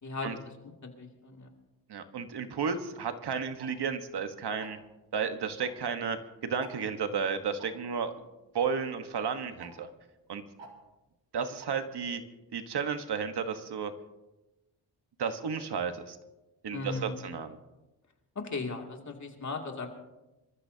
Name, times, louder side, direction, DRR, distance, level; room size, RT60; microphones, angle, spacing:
voice 1, 1.0-1.5 16.7-17.2 18.3-19.9, left 3 dB, 40° left, 2 dB, 2.6 m, -37 dB
voice 2, 1.9-4.8 5.1-6.2 6.4-8.1 8.5-9.9 10.3-10.4 11.3-12.2 12.5-13.9 15.2-16.2 16.6-17.6, right 6 dB, 65° right, 8 dB, 1.4 m, -33 dB
Tick-tock, 2.6-2.7 3.6-3.9 4.6-4.8 5.6-5.7 6.0-6.1 6.6-6.7 7.6-7.7 8.6-8.7 9.6-9.7 10.6-10.7 11.6-11.7, right 4 dB, 90° right, 2.7 m, -48 dB
26.5 x 14.0 x 2.8 m, 1.0 s
cardioid pair, 90°, 43 cm